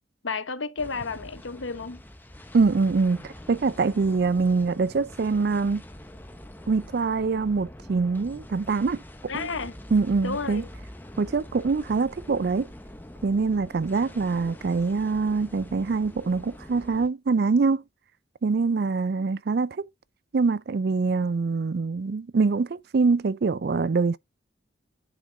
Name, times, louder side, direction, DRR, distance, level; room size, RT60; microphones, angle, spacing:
voice 1, 0.2-2.0 9.3-9.7 10.2-10.7, left 4 dB, 80° left, 1.1 m, -32 dB
sound 1, 0.8-17.1, left 1 dB, 10° left, 0.9 m, -44 dB
voice 2, 2.5-5.8 6.7-9.5 9.9-10.6 11.2-12.7 13.2-17.8 18.4-19.9 20.3-24.2, right 4 dB, 55° right, 0.4 m, -24 dB
9.4 x 5.9 x 3.9 m
head